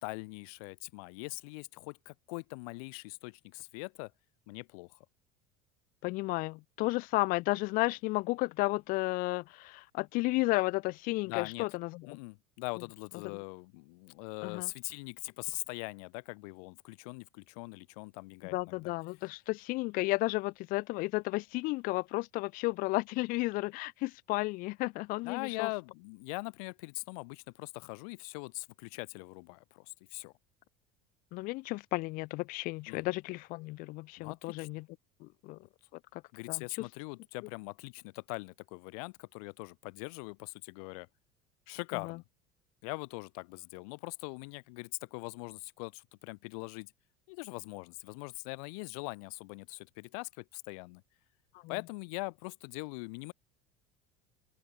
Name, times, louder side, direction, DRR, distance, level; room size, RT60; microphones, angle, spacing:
voice 1, 0.0-4.1 4.5-5.0 11.2-11.7 12.1-18.8 25.2-30.3 32.9-33.1 34.2-34.7 36.3-41.1 41.7-42.2 42.8-46.9 47.3-51.0 51.7-53.3, left 30 dB, 80° left, 1.1 m, -42 dB
voice 2, 6.0-12.2 14.4-14.7 18.5-25.7 31.3-34.9 35.2-35.6 36.1-36.2 36.5-36.9 41.9-42.2 51.6-51.8, left 22 dB, 50° left, 1.1 m, -33 dB
cardioid pair, 165°, 18 cm